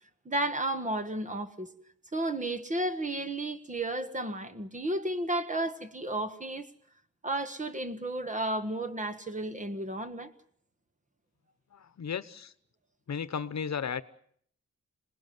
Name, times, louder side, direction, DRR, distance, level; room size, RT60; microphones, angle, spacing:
voice 1, 0.2-1.7 2.1-6.7 7.2-10.3, right 1 dB, 25° right, 1.6 m, -33 dB
voice 2, 11.7-12.5 13.1-14.0, left 7 dB, 65° left, 1.0 m, -34 dB
27.5 x 19.5 x 9.4 m
wide cardioid pair, 170°, 29 cm